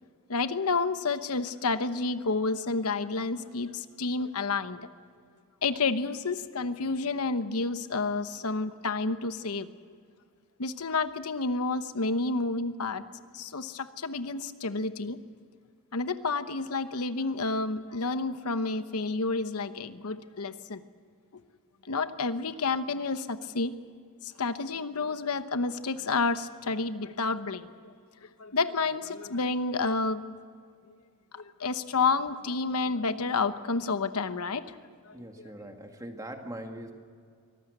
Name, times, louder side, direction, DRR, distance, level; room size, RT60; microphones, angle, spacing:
voice 1, 0.3-4.9 5.6-9.7 10.6-13.0 13.3-15.2 15.9-20.8 21.8-23.7 24.2-27.9 28.4-30.2 31.3-34.8 35.1-35.2, left 3 dB, 80° left, 11 dB, 1.0 m, -30 dB
voice 2, 35.1-36.9, right 1 dB, 15° right, 4 dB, 2.1 m, -41 dB
24.5 x 18.5 x 8.0 m, 2.2 s
head